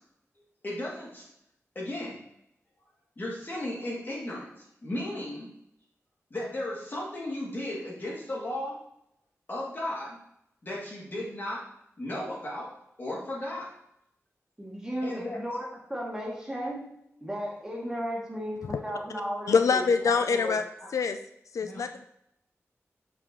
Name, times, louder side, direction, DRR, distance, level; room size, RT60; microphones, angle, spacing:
voice 1, 0.6-1.3 1.7-2.2 3.2-5.5 6.3-8.8 9.5-10.2 10.6-11.7 12.0-13.7 15.0-15.4 20.8-20.9 21.6-21.8, left 1 dB, 40° left, -4 dB, 2.5 m, -35 dB
voice 2, 14.6-16.8 17.2-20.6, equal, 10° right, -4 dB, 2.2 m, -35 dB
voice 3, 19.5-20.6 20.9-21.2 21.5-22.1, left 5 dB, 90° left, 8 dB, 0.4 m, -24 dB
6.6 x 5.9 x 3.1 m, 0.78 s
wide cardioid pair, 105°, 5 cm